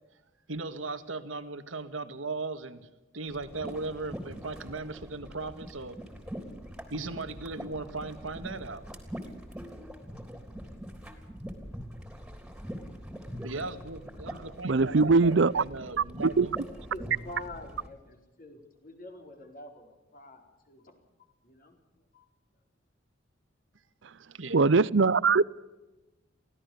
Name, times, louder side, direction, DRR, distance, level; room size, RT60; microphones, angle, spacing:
voice 1, 0.5-2.9 3.1-6.0 6.9-8.8 13.4-16.6 24.3-24.7, right 3 dB, 90° right, 1.8 m, -37 dB
sound 1, 3.3-17.9, equal, 5° right, 3.4 m, -43 dB
voice 2, 14.6-15.6 16.4-16.5 24.5-25.6, right 4 dB, 65° right, 0.6 m, -21 dB
voice 3, 16.9-21.0 21.4-21.8 22.1-22.3, left 1 dB, 45° left, 4.4 m, -46 dB
24.0 x 17.0 x 7.1 m
head